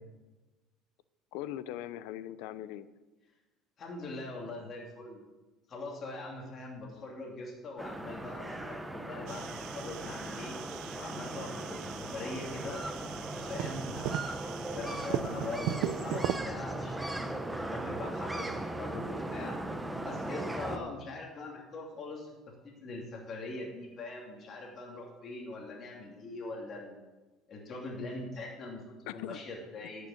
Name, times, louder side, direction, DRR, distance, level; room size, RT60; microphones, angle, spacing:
voice 1, 1.3-2.9 20.7-21.0 29.1-29.4, left 12 dB, 80° left, 15 dB, 0.6 m, -40 dB
voice 2, 3.8-5.2 5.7-10.6 10.9-12.8 13.4-19.6 20.0-27.0 27.5-30.1, left 2 dB, 40° left, -1 dB, 2.7 m, -42 dB
sound 1, 7.8-20.8, right 1 dB, 5° right, 1.0 m, -38 dB
sound 2, 9.3-16.4, right 12 dB, 70° right, 0.7 m, -38 dB
11.5 x 6.6 x 8.4 m, 1.2 s
cardioid pair, 135°, 0 cm